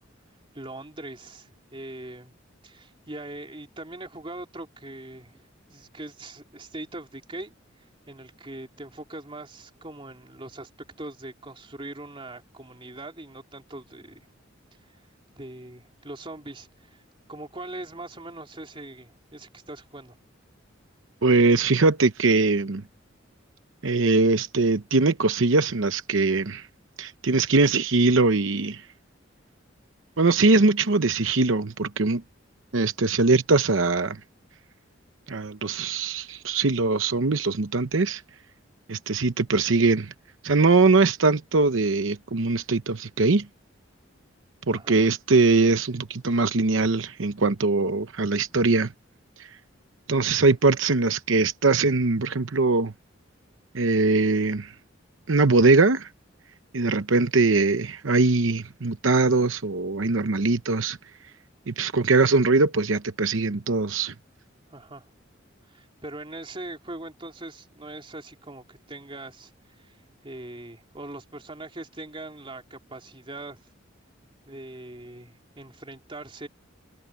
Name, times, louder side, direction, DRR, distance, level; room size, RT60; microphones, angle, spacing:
voice 1, 0.5-2.3 2.6-7.6 8.1-10.7 11.0-14.3 15.3-17.0 17.3-20.2 44.7-45.0 50.3-50.4 64.7-65.1 65.7-69.5 69.8-70.0 70.2-73.6 74.5-76.5, right 2 dB, 25° right, 3.2 m, -41 dB
voice 2, 21.2-22.8 23.8-26.7 27.0-28.8 30.2-32.2 32.7-34.2 35.3-38.2 38.9-40.1 40.4-43.5 44.7-48.9 49.4-49.5 50.1-52.9 53.7-54.7 55.3-56.1 56.7-61.0 61.7-64.1, right 3 dB, 80° right, 0.9 m, -21 dB
head